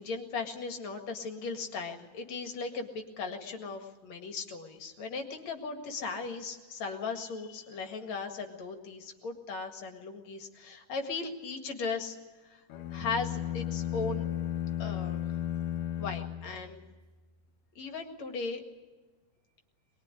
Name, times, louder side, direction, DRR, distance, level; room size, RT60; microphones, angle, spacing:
voice 1, 0.0-12.2 12.4-12.6 12.9-14.5 14.8-15.2 16.0-16.8 17.8-18.6, left 4 dB, 60° left, 5 dB, 3.0 m, -37 dB
sound 1, 12.7-17.1, left 10 dB, 80° left, 2.8 m, -34 dB
23.5 x 21.0 x 9.8 m, 1.2 s
omnidirectional pair, 3.7 m